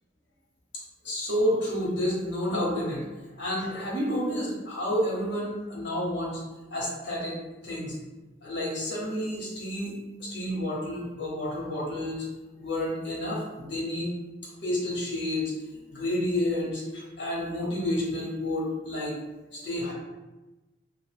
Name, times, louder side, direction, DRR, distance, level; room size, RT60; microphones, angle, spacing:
voice 1, 1.0-3.0 3.4-6.4 6.7-7.3 7.6-7.9 8.4-9.9 10.2-12.2 12.6-14.1 14.6-15.5 15.9-19.1 19.5-19.9, left 1 dB, 70° left, -4 dB, 0.8 m, -30 dB
2.5 x 2.2 x 3.2 m, 1.1 s
head